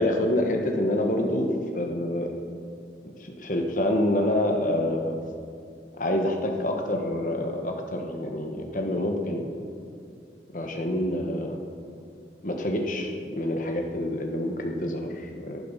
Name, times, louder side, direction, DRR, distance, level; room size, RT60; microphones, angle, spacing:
voice 1, 0.0-2.3 3.0-5.2 6.0-9.5 10.5-11.6 12.4-15.6, left 1 dB, 45° left, 2 dB, 1.4 m, -27 dB
11.5 x 11.0 x 5.7 m, 2.3 s
head